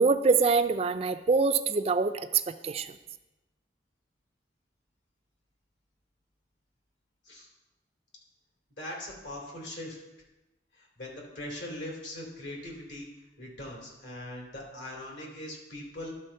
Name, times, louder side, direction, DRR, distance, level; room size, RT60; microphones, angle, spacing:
voice 1, 0.0-2.9, right 4 dB, 35° right, 10 dB, 0.4 m, -25 dB
voice 2, 8.8-10.0 10.8-13.1 13.4-16.1, left 1 dB, 75° left, -2 dB, 2.5 m, -41 dB
11.5 x 4.1 x 5.5 m, 1.0 s
head